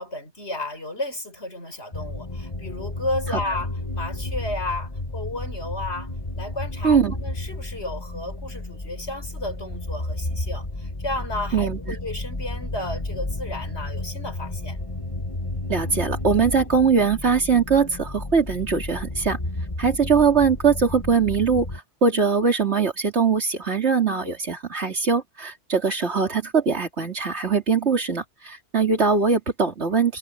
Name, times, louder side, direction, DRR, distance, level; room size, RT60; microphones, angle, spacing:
voice 1, 0.0-6.1 6.4-14.8, left 2 dB, 75° left, 7.1 m, -33 dB
sound 1, 1.9-21.8, left 2 dB, 30° left, 1.7 m, -32 dB
voice 2, 6.8-7.1 11.5-12.0 15.7-19.4 19.8-21.7 22.0-30.2, right 5 dB, 85° right, 3.2 m, -21 dB
omnidirectional pair, 1.1 m